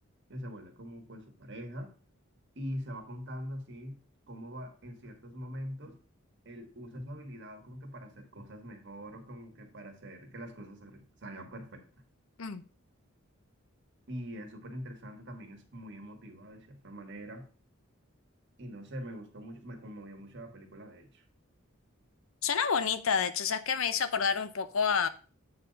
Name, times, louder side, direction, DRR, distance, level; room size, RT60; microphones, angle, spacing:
voice 1, 0.3-1.9 2.5-4.0 4.3-6.0 6.4-11.8 14.1-17.5 18.6-21.2, equal, 60° right, 1.6 m, -43 dB
voice 2, 22.4-25.1, left 6 dB, 75° left, 0.6 m, -29 dB
8.0 x 4.0 x 5.1 m
head